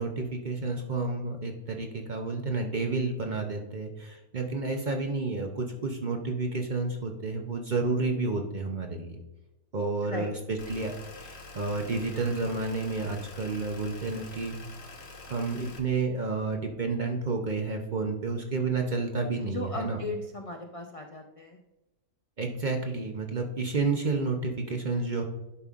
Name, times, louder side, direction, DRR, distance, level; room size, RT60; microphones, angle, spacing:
voice 1, 0.0-9.2 9.7-14.6 15.3-20.0 22.4-25.2, right 3 dB, 45° right, 3 dB, 0.7 m, -30 dB
sound 1, 10.6-15.8, left 3 dB, 50° left, 1.1 m, -46 dB
voice 2, 19.4-21.6, left 2 dB, 65° left, 3 dB, 0.3 m, -37 dB
11.0 x 5.4 x 2.4 m, 1.0 s
omnidirectional pair, 1.5 m